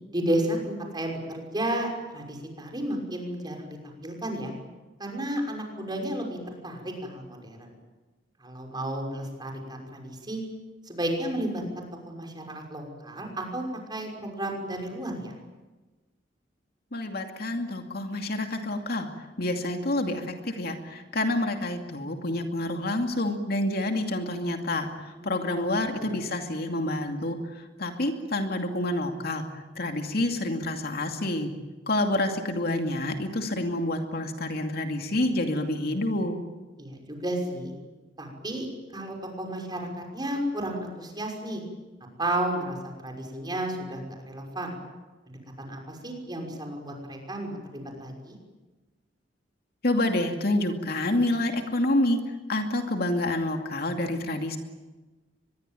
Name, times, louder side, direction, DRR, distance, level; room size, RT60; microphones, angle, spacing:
voice 1, 0.1-4.5 5.0-6.4 6.6-7.7 8.4-10.4 10.8-13.6 13.9-15.3 25.1-25.4 26.0-26.1 36.8-37.7 38.2-38.7 38.9-41.6 42.2-44.7 45.3-48.3, right 1 dB, 25° right, 2 dB, 5.9 m, -32 dB
voice 2, 16.9-19.1 19.4-24.9 25.2-29.4 29.8-31.5 31.9-36.4 49.8-52.2 52.5-54.6, left 1 dB, 55° left, 4 dB, 2.5 m, -28 dB
24.5 x 22.0 x 9.2 m, 1.2 s
head